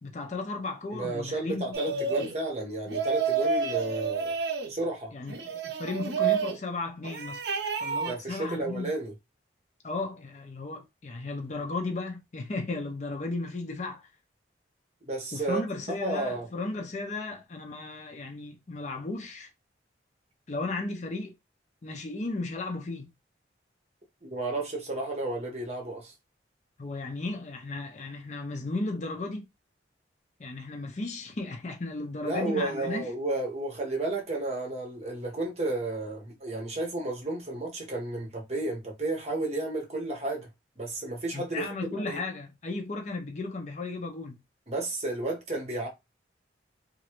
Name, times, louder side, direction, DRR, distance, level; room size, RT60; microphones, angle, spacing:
voice 1, 0.0-2.0 5.1-7.4 7.8-8.9 9.8-14.0 15.3-19.5 20.5-21.3 21.8-23.1 26.8-29.5 30.4-33.1 41.3-44.4, left 3 dB, 40° left, 0.5 m, -35 dB
voice 2, 0.9-4.4 4.7-5.1 8.1-9.1 15.1-15.6 15.9-16.5 24.2-26.1 32.2-40.5 40.8-41.7 42.0-42.2 44.7-45.9, right 2 dB, 35° right, 1.0 m, -32 dB
sound 1, 1.7-2.4 2.9-4.7 5.3-6.6 7.0-8.1, right 5 dB, 60° right, 0.5 m, -29 dB
3.0 x 2.5 x 2.9 m
head